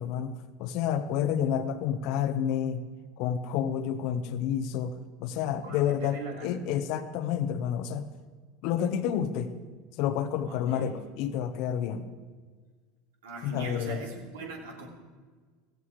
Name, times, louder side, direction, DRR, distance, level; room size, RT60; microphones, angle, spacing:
voice 1, 0.0-2.8 3.2-8.1 8.6-9.5 10.0-12.1 13.4-14.0, left 9 dB, 55° left, 11 dB, 1.2 m, -29 dB
voice 2, 5.6-6.6 10.5-11.0 13.2-14.9, right 3 dB, 70° right, 1 dB, 3.1 m, -41 dB
16.0 x 15.5 x 4.9 m, 1.5 s
figure-of-eight pair, 75°, 0 cm